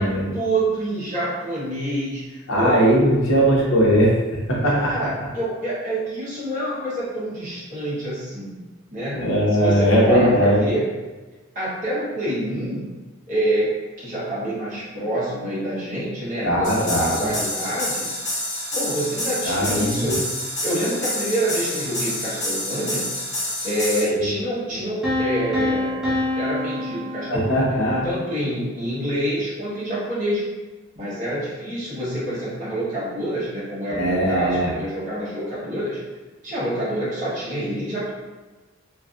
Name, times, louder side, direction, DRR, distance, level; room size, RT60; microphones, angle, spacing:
voice 1, 0.0-2.8 4.6-8.6 8.9-9.2 9.5-11.0 11.5-12.9 13.3-18.1 18.7-23.1 23.6-30.6 30.9-36.0 36.4-38.1, right 1 dB, 40° right, -9 dB, 0.8 m, -27 dB
voice 2, 2.5-4.1 4.5-4.9 9.1-10.6 16.4-17.3 19.4-20.1 24.1-24.3 27.3-28.1 33.9-34.7, equal, 75° left, -4 dB, 0.7 m, -19 dB
sound 1, 16.6-24.0, left 1 dB, 55° left, 1.0 m, -28 dB
sound 2, 25.0-27.9, left 2 dB, ahead, 0.4 m, -26 dB
2.5 x 2.4 x 2.3 m, 1.2 s
head